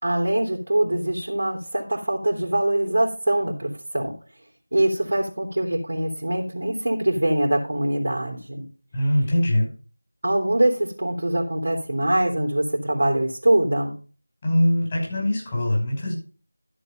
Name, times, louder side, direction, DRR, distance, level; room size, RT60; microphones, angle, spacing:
voice 1, 0.0-4.1 4.7-8.7 10.2-13.9, right 1 dB, 65° right, 0 dB, 3.2 m, -23 dB
voice 2, 8.9-9.7 14.4-16.1, left 1 dB, 25° left, -3 dB, 5.8 m, -22 dB
13.0 x 7.6 x 5.3 m, 0.38 s
figure-of-eight pair, 170°, 0 cm